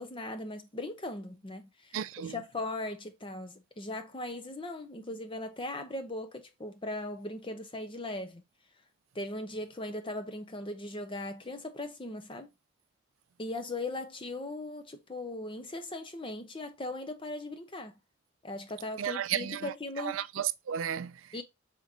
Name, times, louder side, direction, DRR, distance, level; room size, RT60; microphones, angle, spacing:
voice 1, 0.0-2.0 2.3-8.4 9.1-12.5 13.4-17.9 18.4-20.2 21.3-21.4, left 2 dB, 25° left, 0.8 m, -39 dB
voice 2, 1.9-2.4 19.0-21.3, right 9 dB, 80° right, 0.4 m, -34 dB
5.2 x 3.7 x 2.6 m
head